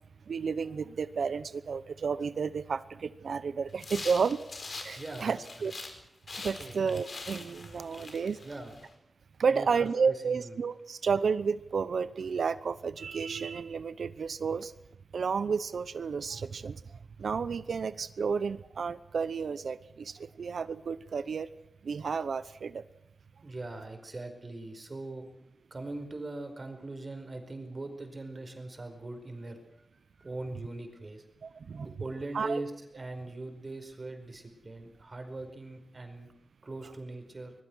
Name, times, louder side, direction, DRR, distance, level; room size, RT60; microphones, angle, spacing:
voice 1, 0.3-4.4 4.8-5.7 6.4-8.4 9.4-14.7 15.1-16.8 17.2-21.5 21.8-22.8 31.4-31.9 32.3-32.6, right 5 dB, 85° right, 14 dB, 0.9 m, -31 dB
sound 1, 3.8-6.0 6.3-8.9, left 3 dB, 55° left, 4.6 m, -43 dB
voice 2, 5.0-5.5 6.6-6.8 8.4-8.7 9.5-10.6 23.4-25.3 25.7-29.6 30.2-31.2 31.8-36.3 36.6-37.5, right 2 dB, 35° right, 6 dB, 4.8 m, -41 dB
25.0 x 21.0 x 6.3 m, 0.83 s
wide cardioid pair, 105°, 0 cm